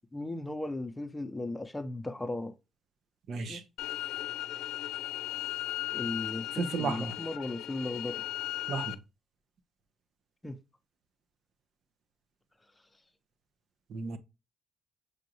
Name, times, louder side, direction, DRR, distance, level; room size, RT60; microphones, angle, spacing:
voice 1, 0.1-2.5 3.3-3.6 5.9-8.2 10.4-10.6, left 2 dB, 15° left, 0.7 m, -36 dB
voice 2, 3.3-3.6 6.6-7.1 8.7-9.0 13.9-14.2, right 4 dB, 65° right, 0.8 m, -33 dB
sound 1, 3.8-8.9, left 15 dB, 85° left, 0.4 m, -37 dB
6.3 x 2.5 x 2.9 m
supercardioid pair, 75°, 0 cm